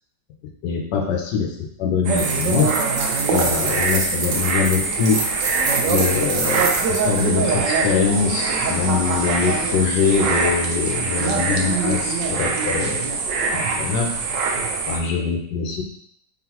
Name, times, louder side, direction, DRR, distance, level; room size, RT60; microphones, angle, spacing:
voice 1, 0.6-2.7 3.3-5.3 5.8-13.0 13.5-14.1 14.9-15.8, left 6 dB, 80° left, 1 dB, 1.3 m, -23 dB
sound 1, 2.0-15.0, right 4 dB, 85° right, 1.3 m, -23 dB
sound 2, 2.2-7.2, right 3 dB, 65° right, 1.0 m, -28 dB
Metal Spring, 6.2-11.7 12.3-12.4, left 1 dB, 35° left, 1.2 m, -41 dB
3.9 x 3.5 x 2.9 m, 0.70 s
omnidirectional pair, 1.9 m